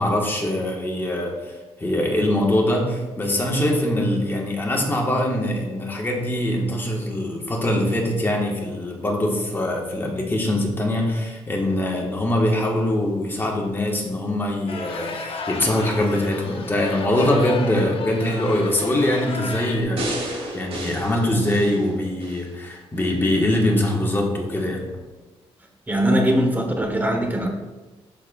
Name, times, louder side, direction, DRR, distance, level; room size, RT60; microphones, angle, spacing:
voice 1, 0.0-1.5 1.8-24.8, left 1 dB, 20° left, -1 dB, 1.6 m, -23 dB
sound 1, 14.7-19.8, left 4 dB, 55° left, 0.8 m, -34 dB
sound 2, 20.0-22.5 23.0-23.1, right 1 dB, 65° right, 2.1 m, -32 dB
voice 2, 25.9-27.5, equal, 15° right, 3 dB, 1.1 m, -21 dB
12.0 x 4.4 x 2.5 m, 1.2 s
cardioid pair, 95°, 11 cm